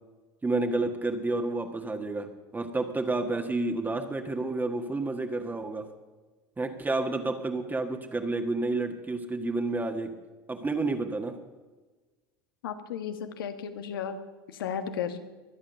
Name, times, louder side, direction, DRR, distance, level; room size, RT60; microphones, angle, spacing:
voice 1, 0.4-5.9 6.6-10.1 10.5-11.4, right 2 dB, 15° right, 4 dB, 1.6 m, -30 dB
voice 2, 12.6-14.2 14.5-15.2, left 8 dB, 85° left, 9 dB, 1.6 m, -34 dB
23.0 x 8.8 x 6.8 m, 1.3 s
hypercardioid pair, 90°, 11 cm